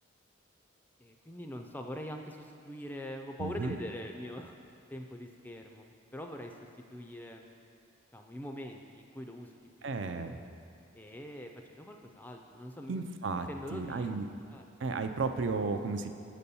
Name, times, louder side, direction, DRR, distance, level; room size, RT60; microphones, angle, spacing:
voice 1, 1.0-4.5 4.9-7.5 8.1-9.5 9.8-10.2 10.9-13.1 13.3-14.2 14.5-14.6, equal, 10° left, 3 dB, 0.4 m, -43 dB
voice 2, 3.4-3.8 9.8-10.4 12.9-14.3 14.8-16.1, right 4 dB, 60° right, 8 dB, 0.4 m, -34 dB
7.7 x 4.2 x 6.9 m, 2.6 s
head